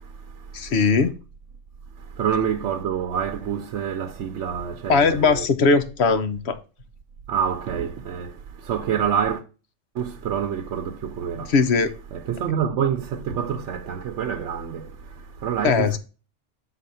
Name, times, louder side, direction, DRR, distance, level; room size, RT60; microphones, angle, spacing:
voice 1, 0.5-1.1 4.9-6.6 11.5-11.9 15.6-16.0, left 4 dB, 65° left, 1.0 m, -19 dB
voice 2, 2.2-5.5 7.3-8.3 8.6-9.4 10.0-11.5 12.1-14.9 15.4-16.0, right 8 dB, 70° right, 1.0 m, -26 dB
6.6 x 4.1 x 5.5 m
omnidirectional pair, 1.3 m